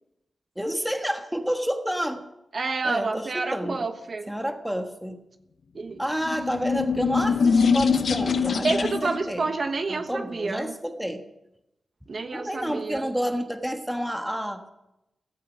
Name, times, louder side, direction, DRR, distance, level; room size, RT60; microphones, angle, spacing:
voice 1, 0.6-2.3 2.8-3.9 4.3-5.2 6.0-9.5 9.9-11.2 12.3-14.7, equal, 5° right, 5 dB, 1.4 m, -29 dB
voice 2, 2.5-4.3 5.7-6.0 8.6-10.7 12.1-13.1, right 3 dB, 40° right, 7 dB, 1.2 m, -29 dB
sound 1, 6.1-9.2, left 5 dB, 60° left, 0.9 m, -23 dB
16.5 x 15.0 x 5.6 m, 0.88 s
wide cardioid pair, 170°, 0 cm